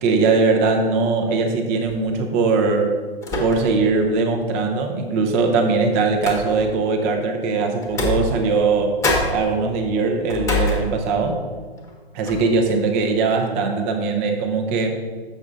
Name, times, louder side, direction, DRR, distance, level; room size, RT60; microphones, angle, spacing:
voice 1, 0.0-2.9 3.4-9.0 9.3-11.4 12.1-15.0, right 4 dB, 15° right, 3 dB, 0.4 m, -20 dB
sound 1, 1.9-2.2 3.2-3.9 4.3-4.4 5.4-6.8 7.8-8.7 9.0-11.4 11.8-11.9 12.2-12.6, left 1 dB, 10° left, 1.0 m, -26 dB
6.7 x 6.2 x 3.7 m, 1.5 s
hypercardioid pair, 140°, 32 cm